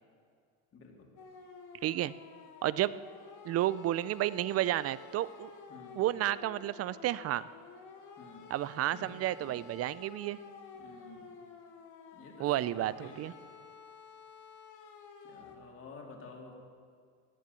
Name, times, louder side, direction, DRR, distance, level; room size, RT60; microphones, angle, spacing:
voice 1, 0.7-1.1 5.7-6.1 8.2-8.6 8.9-9.6 10.8-11.3 12.1-13.3 15.2-16.5, left 3 dB, 35° left, 1 dB, 3.3 m, -51 dB
sound 1, 1.2-15.6, left 5 dB, 50° left, 2.2 m, -52 dB
voice 2, 1.8-2.1 2.6-2.9 3.4-5.5 6.0-7.5 8.5-10.4 12.4-13.3, right 14 dB, 40° right, 18 dB, 0.4 m, -31 dB
16.5 x 10.5 x 8.2 m, 2.1 s
supercardioid pair, 115°, 39 cm